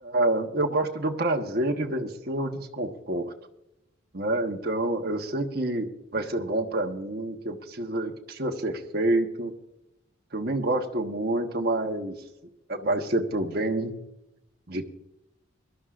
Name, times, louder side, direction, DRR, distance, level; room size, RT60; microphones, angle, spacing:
voice 1, 0.0-3.3 4.1-5.9 6.1-9.5 10.3-12.1 12.7-13.9 14.7-14.9, right 1 dB, 50° right, 3 dB, 1.2 m, -27 dB
23.5 x 12.5 x 2.5 m, 0.85 s
head